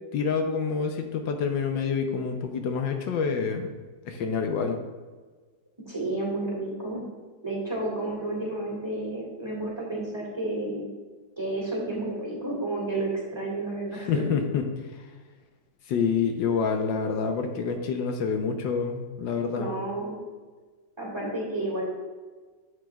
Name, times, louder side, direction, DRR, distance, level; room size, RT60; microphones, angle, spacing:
voice 1, 0.1-3.7 4.0-4.8 14.1-14.7 15.9-19.7, left 6 dB, 80° left, 5 dB, 1.5 m, -27 dB
voice 2, 5.9-7.0 7.4-10.9 11.4-14.3 19.5-20.2 21.0-21.9, right 2 dB, 15° right, -4 dB, 1.9 m, -31 dB
10.5 x 7.8 x 2.3 m, 1.4 s
omnidirectional pair, 2.0 m